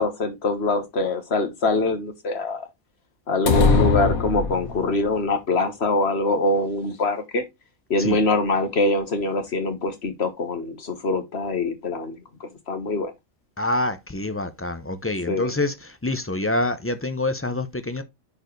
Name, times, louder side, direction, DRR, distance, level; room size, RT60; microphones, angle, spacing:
voice 1, 0.0-2.7 3.3-7.4 7.9-13.1 15.3-15.6, left 2 dB, 50° left, 1.7 m, -24 dB
sound 1, 3.5-5.1, left 5 dB, 85° left, 1.5 m, -21 dB
voice 2, 13.6-18.0, left 2 dB, 20° left, 0.4 m, -26 dB
9.6 x 4.6 x 3.2 m
omnidirectional pair, 1.5 m